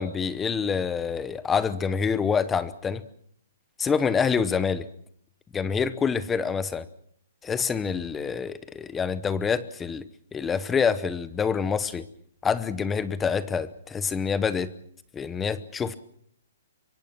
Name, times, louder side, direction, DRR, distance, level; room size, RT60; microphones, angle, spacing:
voice 1, 0.0-3.0 3.8-4.9 5.5-6.9 7.4-10.0 10.3-12.0 12.4-14.7 15.1-15.9, left 6 dB, 10° left, 15 dB, 0.8 m, -26 dB
24.5 x 23.5 x 6.1 m, 0.66 s
hypercardioid pair, 170°, 0 cm